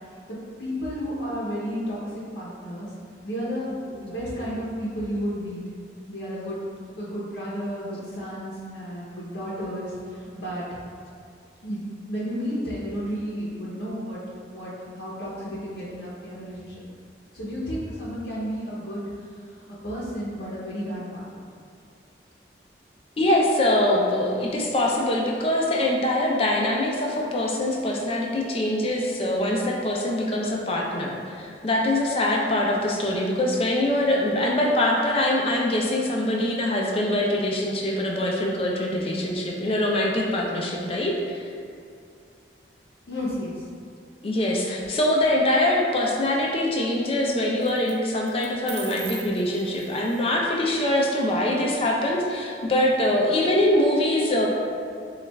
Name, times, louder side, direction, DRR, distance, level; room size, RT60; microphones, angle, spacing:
voice 1, 0.3-2.9 3.2-5.6 6.1-6.6 6.9-10.7 11.6-11.8 12.1-14.2 14.5-16.8 17.3-19.0 19.8-21.4 43.1-43.6, equal, 80° left, -9 dB, 0.7 m, -32 dB
voice 2, 23.2-41.5 44.2-54.5, left 1 dB, 30° left, -1 dB, 0.5 m, -23 dB
sound 1, 44.8-45.3 47.6-47.9 48.3-50.3, right 5 dB, 75° right, 0.5 m, -41 dB
7.0 x 2.4 x 2.2 m, 2.4 s
head